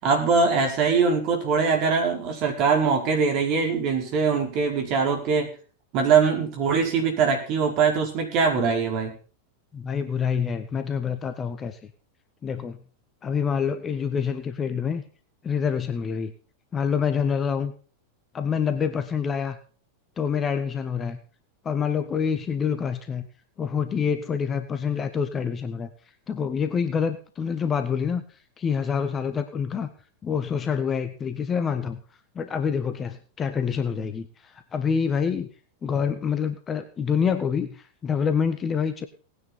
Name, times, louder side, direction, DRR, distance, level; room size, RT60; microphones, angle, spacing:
voice 1, 0.0-5.5 5.9-9.1, right 5 dB, 40° right, 3 dB, 4.8 m, -22 dB
voice 2, 9.7-11.8 12.4-12.8 13.2-15.0 15.4-16.3 16.7-17.7 18.3-19.6 20.2-21.2 21.6-23.3 23.6-25.9 26.3-28.2 28.6-29.9 30.2-32.0 32.3-35.5 35.8-39.1, left 6 dB, 20° left, 9 dB, 1.4 m, -26 dB
18.5 x 9.8 x 4.2 m, 0.39 s
figure-of-eight pair, 90°, 0 cm